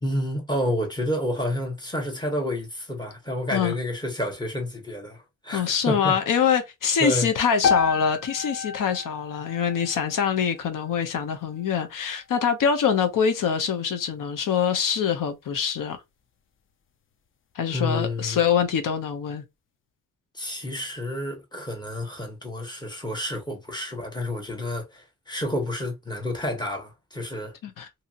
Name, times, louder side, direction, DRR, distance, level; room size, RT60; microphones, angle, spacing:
voice 1, 0.0-6.2 7.0-7.3 17.7-18.4 20.3-27.5, left 1 dB, 15° left, 0.9 m, -29 dB
voice 2, 5.5-16.0 17.5-19.4 27.6-28.0, left 7 dB, 75° left, 0.7 m, -24 dB
sound 1, 7.6-11.8, left 6 dB, 40° left, 0.4 m, -30 dB
2.7 x 2.7 x 2.4 m
wide cardioid pair, 155°, 33 cm